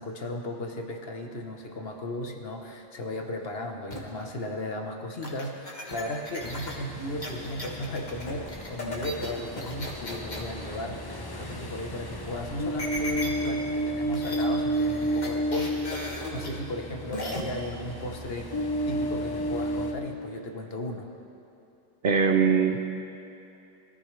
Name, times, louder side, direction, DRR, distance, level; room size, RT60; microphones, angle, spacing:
voice 1, 0.0-21.1, left 1 dB, 60° left, 3 dB, 1.4 m, -36 dB
sound 1, 3.9-4.2 5.2-10.5 12.8-13.5 13.8-13.9 14.1-14.5 14.7-16.5 17.1-17.4, left 1 dB, 40° left, 1.7 m, -37 dB
Ocean, 6.4-19.9, right 1 dB, 25° left, 0.8 m, -32 dB
voice 2, 22.0-22.8, right 6 dB, 55° right, 5 dB, 0.8 m, -21 dB
21.5 x 13.5 x 3.3 m, 2.8 s
omnidirectional pair, 1.2 m